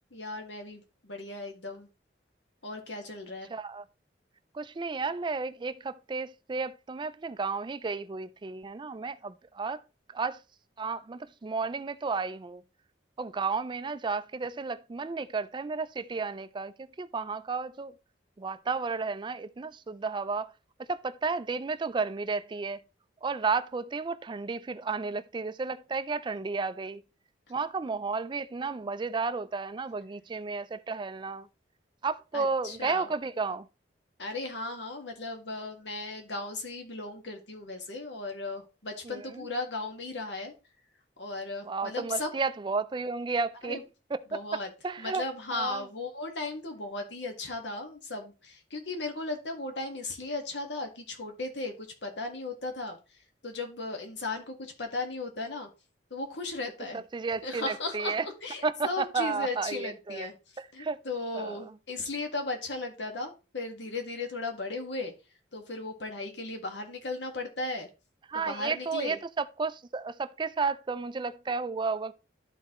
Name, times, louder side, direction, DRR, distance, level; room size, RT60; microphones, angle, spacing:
voice 1, 0.1-1.9 2.6-3.5 32.3-33.1 34.2-40.5 41.2-42.3 43.7-43.8 44.3-44.7 45.0-53.0 53.4-55.7 56.1-57.0 57.4-60.3 60.7-65.1 65.5-67.9 68.3-69.2, left 2 dB, 85° left, 1.6 m, -36 dB
voice 2, 3.5-3.8 4.5-9.8 10.1-10.4 10.8-12.6 13.2-17.9 18.4-20.5 20.9-22.8 23.2-27.0 27.5-31.5 32.0-33.7 39.0-39.5 41.7-43.8 44.1-44.4 44.8-45.2 45.5-45.9 56.9-58.3 58.6-60.3 60.6-61.0 61.3-61.7 68.3-72.1, right 4 dB, 25° right, 0.4 m, -32 dB
12.5 x 4.1 x 3.0 m
head